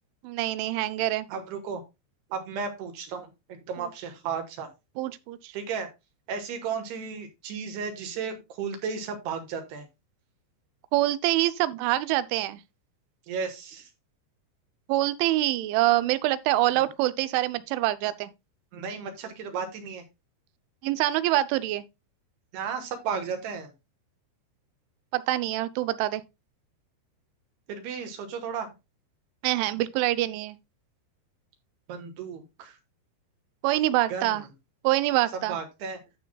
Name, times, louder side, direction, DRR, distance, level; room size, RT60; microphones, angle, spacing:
voice 1, 0.2-1.3 3.8-3.9 5.0-5.5 10.9-12.6 14.9-18.3 20.8-21.8 25.1-26.2 29.4-30.6 33.6-34.4 34.8-35.6, right 16 dB, 90° right, 3.0 m, -25 dB
voice 2, 1.3-1.8 2.3-3.3 3.7-4.7 5.5-5.9 6.3-9.9 13.3-13.9 18.7-20.0 22.5-23.7 27.7-28.7 31.9-32.8 34.1-34.4 35.5-36.0, right 6 dB, 70° right, 3.0 m, -34 dB
13.5 x 5.7 x 2.2 m
omnidirectional pair, 5.3 m